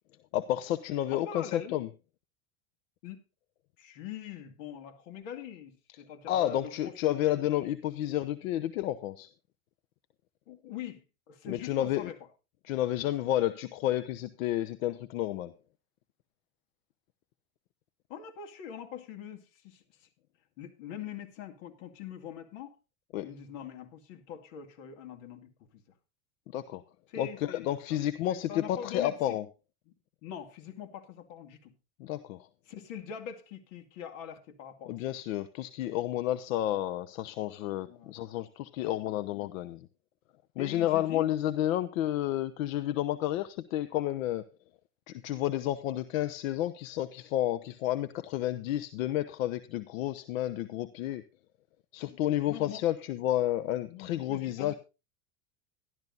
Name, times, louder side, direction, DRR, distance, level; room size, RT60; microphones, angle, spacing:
voice 1, 0.3-1.9 6.3-9.3 11.4-12.1 12.6-15.5 23.1-23.3 26.5-26.8 27.2-29.5 32.0-32.5 34.9-39.9 40.6-44.4 45.1-51.2 51.9-54.7, left 13 dB, 85° left, 13 dB, 0.9 m, -31 dB
voice 2, 1.1-1.8 3.0-3.2 3.8-7.5 10.5-12.2 18.1-20.1 20.6-22.8 23.2-25.8 27.1-29.4 30.2-31.7 32.7-35.0 37.9-38.1 38.8-39.5 40.6-41.3 52.0-52.2 52.5-52.8 53.9-54.8, left 9 dB, 65° left, 5 dB, 2.5 m, -43 dB
12.5 x 12.5 x 4.0 m, 0.29 s
supercardioid pair, 140°, 39 cm